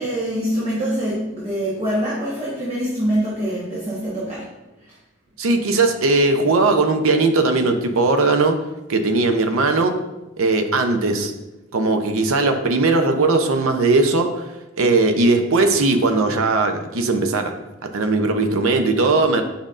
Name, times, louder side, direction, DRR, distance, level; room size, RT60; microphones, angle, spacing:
voice 1, 0.0-4.4 4.8-4.9, equal, 25° right, -7 dB, 1.2 m, -24 dB
voice 2, 5.4-8.6 8.9-10.0 10.4-11.3 11.7-14.4 14.8-17.5 17.8-19.4, right 3 dB, 80° right, 6 dB, 0.6 m, -18 dB
7.4 x 5.1 x 2.5 m, 1.0 s
head